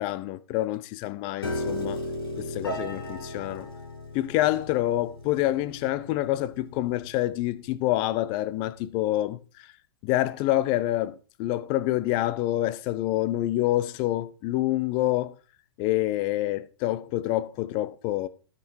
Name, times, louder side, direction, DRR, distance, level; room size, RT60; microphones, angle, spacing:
voice 1, 0.0-2.0 2.4-3.7 4.1-9.7 10.0-15.3 15.8-18.3, left 15 dB, 35° left, 0.8 m, -27 dB
Piano, 1.4-7.6, left 1 dB, 70° left, 3.2 m, -36 dB
13.0 x 5.8 x 4.4 m
figure-of-eight pair, 100°, 13 cm